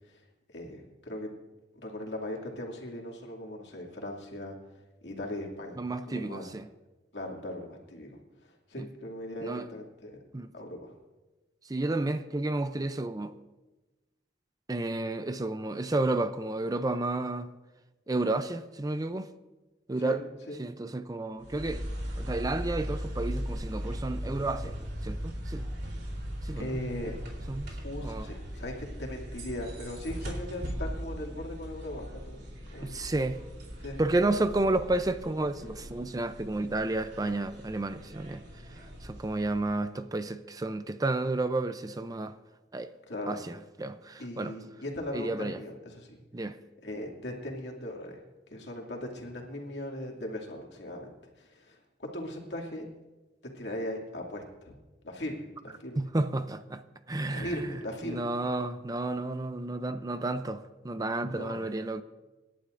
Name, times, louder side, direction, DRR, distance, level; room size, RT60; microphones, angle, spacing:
voice 1, 0.5-1.3 1.8-4.6 5.0-6.5 7.1-10.2 10.5-10.9 20.0-20.2 20.5-20.6 26.5-27.1 27.8-33.0 33.8-34.0 43.1-43.4 44.2-46.2 46.8-48.2 48.5-52.9 53.5-54.7 55.0-56.0 57.3-58.3 61.3-61.6, left 1 dB, 70° left, 2.4 m, -39 dB
voice 2, 5.8-6.7 8.8-8.9 9.4-9.7 10.3-10.5 11.7-13.3 14.7-17.5 18.1-19.3 19.9-20.2 20.6-21.8 22.2-25.7 26.4-26.8 27.5-27.7 28.0-28.3 32.8-33.4 34.0-38.4 39.0-42.4 42.7-42.9 43.3-44.5 45.1-45.6 46.3-46.6 56.0-56.8 57.1-57.6 58.0-62.0, right 2 dB, 20° right, 0.5 m, -31 dB
sound 1, 21.4-39.8, equal, 65° right, 3.5 m, -39 dB
26.5 x 11.5 x 2.6 m
head